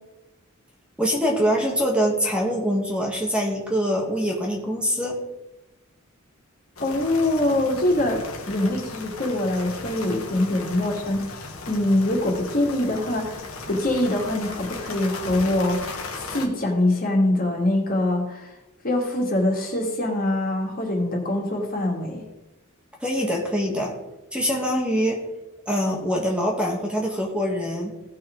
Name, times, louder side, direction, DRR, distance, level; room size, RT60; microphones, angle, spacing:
voice 1, 1.0-5.2 23.0-23.9 24.3-25.2 25.7-27.9, equal, 5° right, -1 dB, 1.6 m, -24 dB
sound 1, 6.8-16.5, left 3 dB, 85° left, 1.9 m, -37 dB
voice 2, 6.8-8.2 8.5-18.5 18.8-22.2, left 1 dB, 45° left, -1 dB, 2.5 m, -24 dB
17.0 x 5.7 x 3.9 m, 1.0 s
head